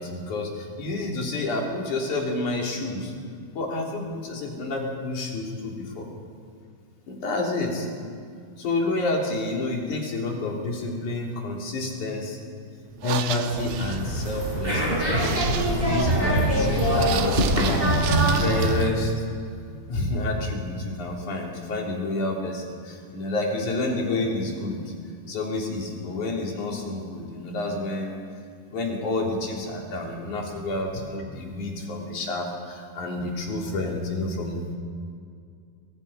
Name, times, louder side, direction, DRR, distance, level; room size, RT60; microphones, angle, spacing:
voice 1, 0.0-3.1 3.5-6.1 7.1-7.9 8.6-12.4 13.0-19.1 19.9-24.9 25.3-28.2 28.7-34.8, left 2 dB, 55° left, -1 dB, 4.9 m, -29 dB
sound 1, 12.9-18.9, right 9 dB, 85° right, 3.0 m, -35 dB
sound 2, 13.5-18.9, right 1 dB, 15° right, 4.6 m, -23 dB
28.5 x 24.5 x 5.7 m, 2.2 s
omnidirectional pair, 4.2 m